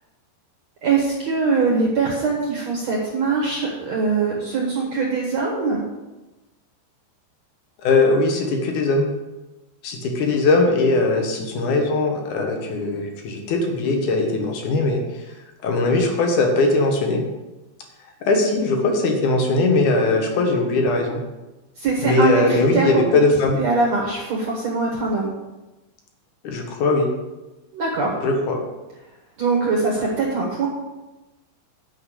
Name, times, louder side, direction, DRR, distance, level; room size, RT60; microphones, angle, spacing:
voice 1, 0.8-5.8 21.8-22.9 23.6-25.3 27.7-28.1 29.4-30.7, right 4 dB, 60° right, -2 dB, 1.9 m, -22 dB
voice 2, 7.8-9.1 9.8-15.0 15.6-17.2 18.2-21.2 22.0-23.6 26.4-27.1 28.2-28.6, left 2 dB, 65° left, 3 dB, 2.1 m, -20 dB
9.7 x 5.7 x 8.2 m, 1.1 s
omnidirectional pair, 5.3 m